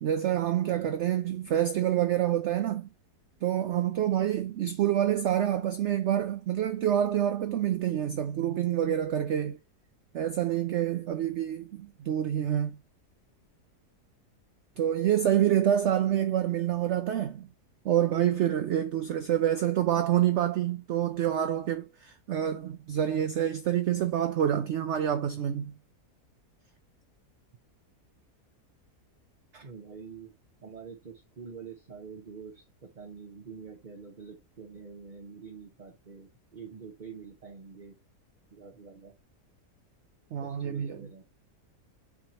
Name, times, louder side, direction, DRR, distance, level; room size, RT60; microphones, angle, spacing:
voice 1, 0.0-2.9 3.4-9.6 10.1-12.8 14.8-17.5 17.8-25.7 29.5-29.6 40.3-41.1, right 11 dB, 80° right, 0.6 m, -27 dB
voice 2, 29.6-30.3 30.6-38.0 38.5-39.2 40.4-41.2, right 5 dB, 35° right, 0.9 m, -46 dB
7.8 x 3.0 x 4.3 m
omnidirectional pair, 1.7 m